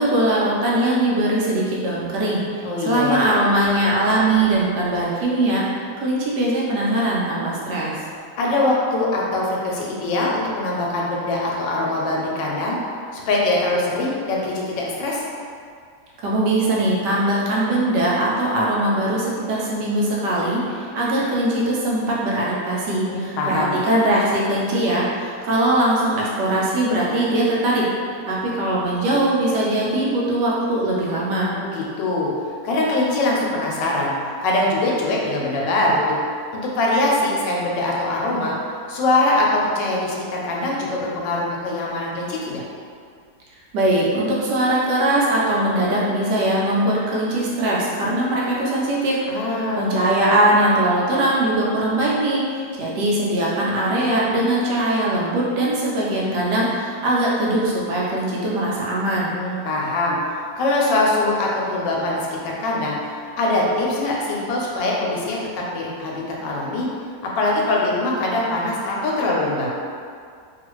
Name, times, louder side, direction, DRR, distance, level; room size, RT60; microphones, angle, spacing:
voice 1, 0.0-5.6 6.0-8.0 16.2-27.8 28.3-31.5 43.7-49.2 49.5-59.3, right 1 dB, 75° right, -5 dB, 1.2 m, -21 dB
voice 2, 2.6-3.2 8.4-12.8 13.1-15.2 23.1-23.8 31.5-32.3 32.6-36.2 36.5-38.5 38.9-42.6 49.3-49.9 59.3-60.2 60.6-66.9 67.2-69.7, left 2 dB, 80° left, -3 dB, 1.2 m, -22 dB
3.1 x 2.4 x 3.0 m, 2.2 s
omnidirectional pair, 1.9 m